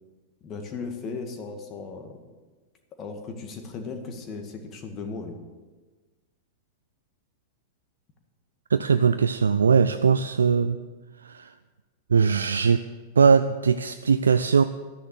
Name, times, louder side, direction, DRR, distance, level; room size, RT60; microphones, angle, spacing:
voice 1, 0.4-2.3 3.0-5.4, left 4 dB, 30° left, 5 dB, 2.0 m, -36 dB
voice 2, 8.7-10.8 11.2-11.5 12.1-12.8 13.2-14.6, right 6 dB, 75° right, 10 dB, 0.4 m, -20 dB
12.0 x 10.0 x 6.8 m, 1.3 s
figure-of-eight pair, 95°, 0 cm